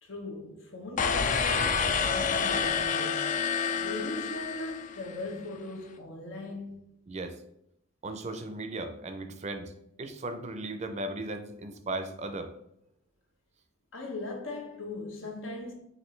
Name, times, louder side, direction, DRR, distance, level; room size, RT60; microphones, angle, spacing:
voice 1, 0.0-3.3 3.8-6.9 13.9-15.7, left 2 dB, 80° left, 1.0 m, -39 dB
sound 1, 1.0-5.2, left 6 dB, 40° left, 0.3 m, -28 dB
voice 2, 7.1-7.4 8.0-9.7 10.0-12.5, right 2 dB, 35° right, 0.5 m, -36 dB
6.1 x 2.6 x 3.2 m
head